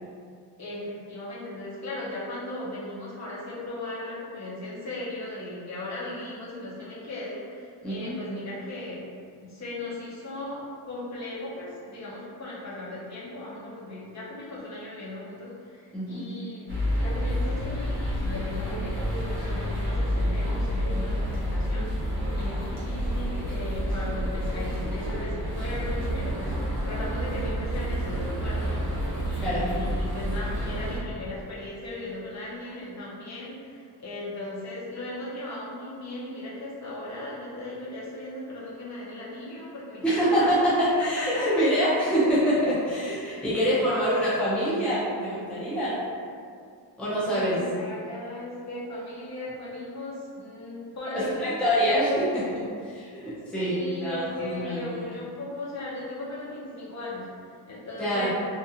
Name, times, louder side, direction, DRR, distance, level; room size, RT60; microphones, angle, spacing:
voice 1, 0.6-9.0 9.4-28.9 29.2-40.6 41.0-41.6 43.9-44.4 47.3-52.6 53.5-57.3 57.7-58.3, left 1 dB, 45° left, -7 dB, 0.7 m, -37 dB
voice 2, 7.8-8.2 15.9-16.2 29.4-29.7 40.0-45.9 47.0-47.6 51.1-52.4 52.9-55.0 58.0-58.3, equal, 5° left, -10 dB, 0.5 m, -25 dB
sound 1, 16.7-31.0, equal, 30° right, 0.8 m, -29 dB
2.5 x 2.2 x 2.7 m, 2.2 s
wide cardioid pair, 140°, 39 cm